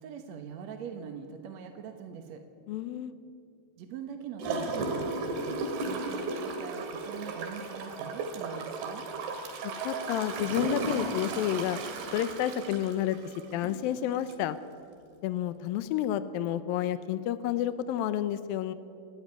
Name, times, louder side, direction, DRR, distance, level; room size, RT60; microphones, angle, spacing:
voice 1, 0.0-2.4 3.8-9.0, right 7 dB, 60° right, 5 dB, 1.9 m, -43 dB
voice 2, 2.7-3.1 9.8-11.8 12.1-13.2 13.5-14.6 15.2-18.7, left 11 dB, 75° left, 13 dB, 2.4 m, -30 dB
Gurgling / Toilet flush, 4.4-13.8 14.3-14.4, right 3 dB, 85° right, 4.3 m, -35 dB
28.5 x 13.5 x 9.7 m, 2.5 s
omnidirectional pair, 4.6 m